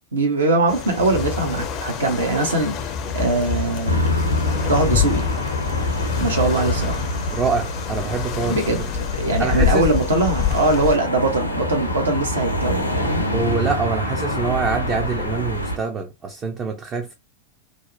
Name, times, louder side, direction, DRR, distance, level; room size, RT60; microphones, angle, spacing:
voice 1, 0.1-4.3 4.7-5.3 6.2-7.1 8.4-13.3, right 2 dB, 70° right, 0.8 m, -22 dB
sound 1, 0.7-11.0, left 8 dB, 35° left, 0.4 m, -27 dB
sound 2, 3.9-15.8, left 1 dB, 85° left, 0.5 m, -26 dB
voice 2, 7.3-8.8 9.4-9.9 13.3-17.1, right 4 dB, 25° right, 0.4 m, -25 dB
2.6 x 2.0 x 2.6 m
figure-of-eight pair, 90°, 0 cm